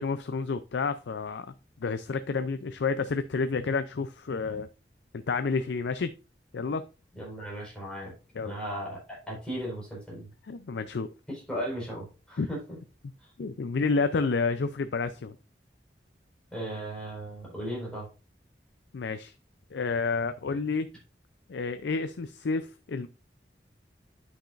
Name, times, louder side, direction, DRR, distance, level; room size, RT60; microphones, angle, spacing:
voice 1, 0.0-1.5 1.8-4.7 5.1-6.1 6.5-6.8 8.4-8.5 10.5-11.1 12.4-12.5 13.4-15.4 18.9-19.3 19.7-20.9 21.5-23.1, left 4 dB, 80° left, 10 dB, 0.5 m, -30 dB
voice 2, 7.2-8.1 8.4-10.3 11.3-12.8 13.2-13.3 16.5-18.1, equal, 5° left, -5 dB, 4.5 m, -36 dB
9.9 x 6.0 x 2.5 m, 0.31 s
head